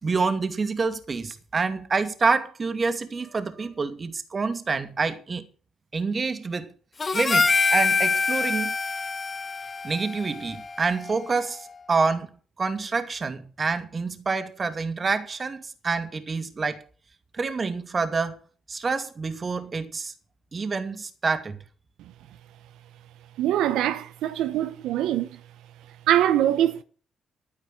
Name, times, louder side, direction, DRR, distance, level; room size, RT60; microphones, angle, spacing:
voice 1, 0.0-5.5 5.9-6.7 7.1-8.7 9.8-12.3 12.6-16.8 17.3-18.4 18.7-20.1 20.5-21.6, right 4 dB, 35° right, 2.3 m, -27 dB
Harmonica, 7.0-11.5, left 4 dB, 30° left, 1.1 m, -25 dB
voice 2, 23.4-25.3 26.1-26.8, right 12 dB, 90° right, 1.0 m, -23 dB
12.0 x 9.7 x 7.5 m
cardioid pair, 90°, 0 cm